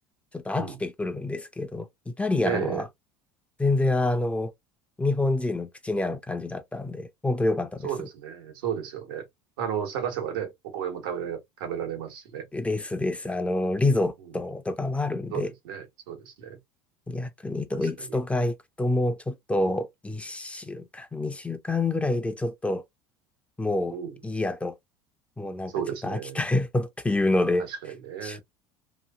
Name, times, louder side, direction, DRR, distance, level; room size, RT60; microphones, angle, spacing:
voice 1, 0.3-2.9 3.6-4.5 5.0-7.9 12.5-15.5 17.1-22.8 23.6-24.0 24.2-24.7 25.4-25.7 26.0-27.7 28.2-28.4, left 2 dB, 10° left, 0.6 m, -27 dB
voice 2, 2.4-2.8 7.8-9.3 9.6-12.5 15.3-16.6 17.8-18.2 19.6-19.8 23.9-24.1 25.7-26.4 27.7-28.4, right 8 dB, 80° right, 1.3 m, -33 dB
3.0 x 2.6 x 2.4 m
supercardioid pair, 90°, 12 cm